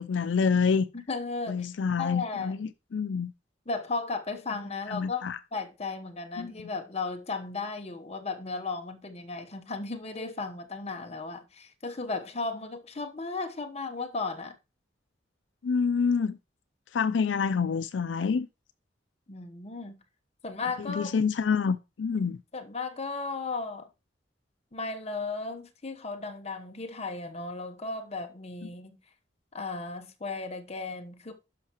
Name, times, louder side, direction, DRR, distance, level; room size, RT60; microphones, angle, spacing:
voice 1, 0.0-0.9 1.5-3.3 4.9-5.4 6.4-6.5 15.6-16.4 16.9-18.5 20.8-22.4, left 5 dB, 85° left, 0.4 m, -27 dB
voice 2, 0.9-1.7 2.0-2.6 3.7-14.5 19.3-20.0 20.4-21.1 22.5-23.9 24.7-29.0 29.5-31.3, left 3 dB, 35° left, 1.0 m, -35 dB
11.5 x 5.7 x 3.0 m
head